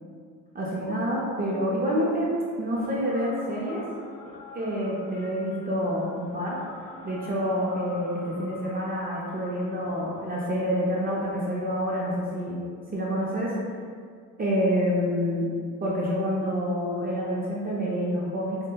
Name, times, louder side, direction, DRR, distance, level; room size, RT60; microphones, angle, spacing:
voice 1, 0.5-3.8 4.5-6.6 7.0-12.6 12.9-13.5 14.4-15.5 15.8-18.6, equal, 25° right, -5 dB, 0.5 m, -27 dB
sound 1, 2.7-11.2, left 2 dB, 85° left, 0.7 m, -45 dB
5.1 x 2.1 x 2.2 m, 2.1 s
cardioid pair, 140°, 33 cm